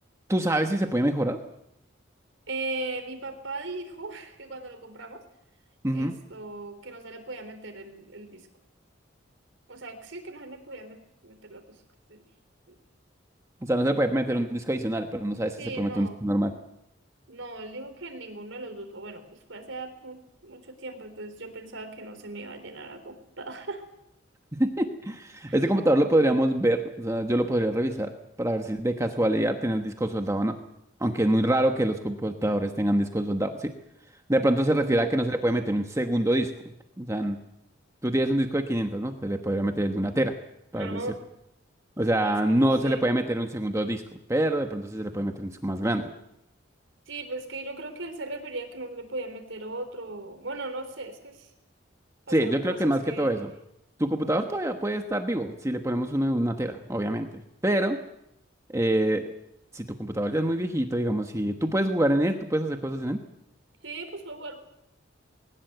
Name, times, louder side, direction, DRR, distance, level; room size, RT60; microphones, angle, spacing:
voice 1, 0.3-1.4 5.8-6.1 13.6-16.5 24.6-28.1 28.4-30.6 31.0-33.7 34.3-36.5 37.0-37.4 38.0-40.3 40.7-41.0 42.0-44.0 44.3-46.1 52.3-53.5 54.0-57.3 57.6-58.0 58.7-59.2 59.7-63.2, right 1 dB, 15° right, 5 dB, 1.2 m, -25 dB
voice 2, 2.5-5.2 5.9-8.5 9.7-11.8 12.1-12.2 12.7-12.8 15.6-16.2 17.3-19.2 19.5-23.8 25.5-25.6 34.6-35.1 40.8-41.2 42.2-43.0 47.1-51.5 52.3-53.4 63.8-64.6, right 2 dB, 85° right, 7 dB, 3.8 m, -38 dB
21.0 x 19.0 x 7.9 m, 0.82 s
head